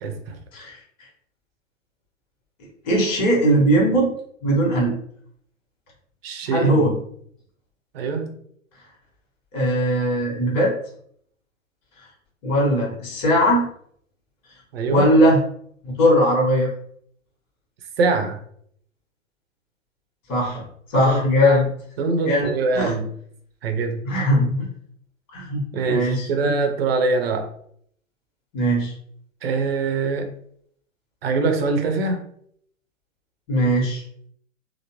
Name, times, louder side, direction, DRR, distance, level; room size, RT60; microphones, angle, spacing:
voice 1, 0.0-0.4 6.2-7.0 7.9-8.3 14.7-15.1 18.0-18.4 20.9-21.6 22.0-23.1 23.6-24.0 25.7-27.5 29.4-30.3 31.2-32.2, right 4 dB, 50° right, 6 dB, 0.8 m, -23 dB
voice 2, 2.8-4.1 4.4-5.0 6.5-6.9 9.5-10.7 12.4-13.7 14.9-15.4 15.8-16.7 20.3-20.6 20.9-21.7 22.2-22.9 24.0-24.6 25.3-26.5 28.5-28.9 33.5-34.0, equal, 35° left, -3 dB, 1.2 m, -19 dB
3.5 x 2.1 x 3.0 m, 0.66 s
figure-of-eight pair, 105°, 39 cm